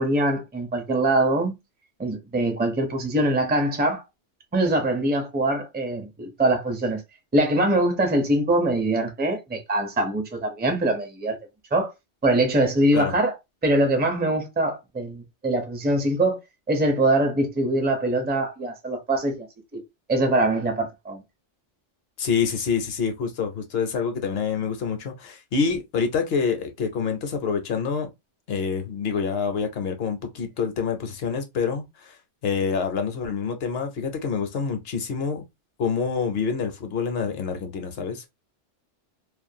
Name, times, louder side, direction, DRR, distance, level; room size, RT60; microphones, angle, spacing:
voice 1, 0.0-1.5 2.0-4.0 4.5-7.0 7.3-11.4 11.7-11.9 12.2-13.4 13.6-16.4 16.7-19.5 19.7-19.8 20.1-21.2, right 1 dB, 15° right, 0.3 m, -23 dB
voice 2, 22.2-28.1 28.5-32.1 32.4-35.4 35.8-38.3, left 5 dB, 65° left, 0.8 m, -27 dB
2.5 x 2.2 x 2.6 m
omnidirectional pair, 1.2 m